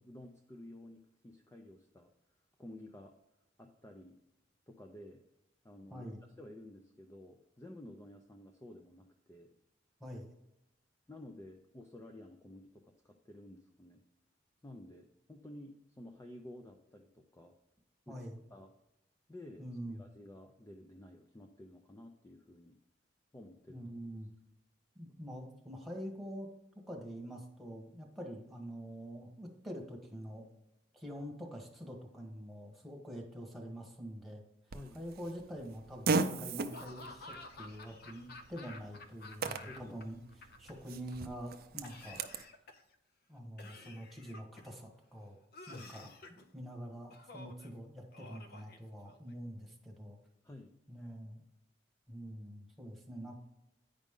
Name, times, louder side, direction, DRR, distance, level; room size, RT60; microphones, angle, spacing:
voice 1, 0.0-2.1 2.6-3.1 3.6-4.2 4.7-5.2 5.6-6.1 6.4-9.5 11.1-14.0 14.6-17.5 18.1-18.2 18.5-18.7 19.3-22.8 23.3-23.8 34.7-35.0 38.6-38.7 39.4-40.0 45.7-45.9 50.4-50.8, left 1 dB, 15° left, 4 dB, 0.5 m, -52 dB
voice 2, 5.9-6.3 10.0-10.3 18.1-18.4 19.6-20.0 23.7-24.3 24.9-26.5 26.9-30.4 30.9-34.4 34.9-40.2 40.6-42.2 43.3-45.4 45.7-46.1 46.5-50.2 50.9-51.4 52.1-53.4, equal, ahead, 0 dB, 1.4 m, -45 dB
Fart, 34.7-42.4, right 4 dB, 55° right, 0.5 m, -39 dB
Laughter / Cough, 36.7-40.0 40.3-41.1 41.8-43.0 43.6-44.8 45.5-46.5 47.1-47.7 48.1-49.3, left 2 dB, 55° left, 0.7 m, -51 dB
9.3 x 5.1 x 3.7 m, 0.87 s
head